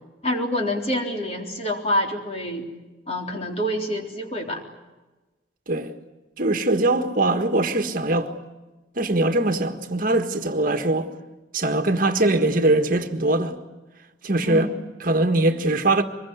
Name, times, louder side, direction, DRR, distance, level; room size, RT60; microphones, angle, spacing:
voice 1, 0.2-2.7 3.1-4.6 14.4-14.9, left 1 dB, 35° left, 3.8 m, -27 dB
voice 2, 6.4-8.3 8.9-11.1 11.5-13.6 14.2-14.7 15.0-16.0, right 2 dB, 50° right, 1.6 m, -21 dB
24.5 x 21.5 x 9.5 m
head